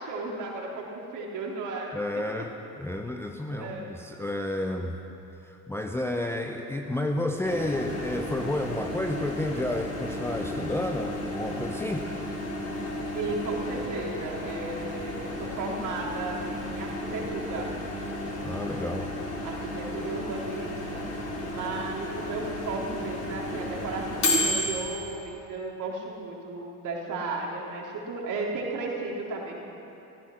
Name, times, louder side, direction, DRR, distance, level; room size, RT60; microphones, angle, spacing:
voice 1, 0.0-2.0 3.5-3.9 13.1-17.7 19.4-21.0 21.4-29.5, right 3 dB, 45° right, -2 dB, 3.5 m, -34 dB
voice 2, 1.9-5.0 5.4-12.1 18.4-19.1, left 1 dB, 5° left, 3 dB, 0.8 m, -31 dB
Microwave oven, 7.4-25.2, left 1 dB, 35° left, 4.2 m, -33 dB
15.5 x 14.5 x 6.4 m, 2.9 s
figure-of-eight pair, 60°, 44 cm